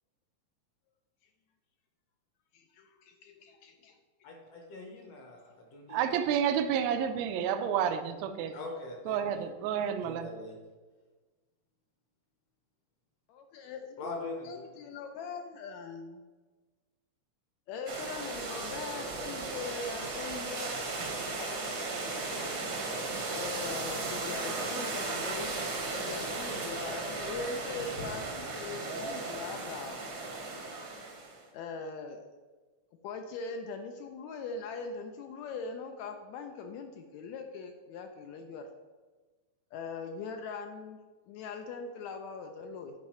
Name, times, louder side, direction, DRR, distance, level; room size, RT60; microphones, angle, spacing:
voice 1, 2.5-4.0 13.3-16.2 17.7-21.6 23.3-25.5 25.9-30.0 31.5-32.2 33.0-38.7 39.7-41.0 41.3-42.9, left 4 dB, 80° left, 5 dB, 1.7 m, -41 dB
voice 2, 4.2-6.0 8.5-10.6 14.0-14.7, left 2 dB, 65° left, 1 dB, 1.8 m, -44 dB
voice 3, 5.9-8.5 9.1-10.3, right 8 dB, 80° right, 8 dB, 1.7 m, -30 dB
sound 1, 17.9-31.4, right 3 dB, 55° right, 1.1 m, -36 dB
8.9 x 4.6 x 4.3 m, 1.3 s
omnidirectional pair, 3.5 m